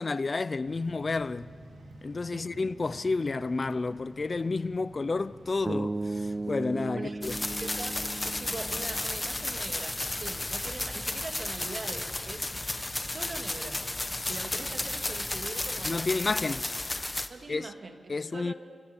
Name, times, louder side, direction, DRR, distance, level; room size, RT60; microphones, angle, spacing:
voice 1, 0.0-1.5 2.0-7.3 15.8-16.6 17.5-17.7 18.1-18.5, left 3 dB, 45° left, 0.6 m, -30 dB
sound 1, 0.6-15.9, right 1 dB, 75° right, 4.3 m, -50 dB
sound 2, 5.7-9.8, right 2 dB, 30° right, 0.8 m, -36 dB
sound 3, 7.2-17.3, left 2 dB, 20° left, 1.4 m, -33 dB
voice 2, 7.6-12.5 13.0-13.8 14.3-16.1 17.3-18.5, right 3 dB, 50° right, 2.5 m, -42 dB
29.0 x 25.0 x 7.2 m
wide cardioid pair, 85°, 0 cm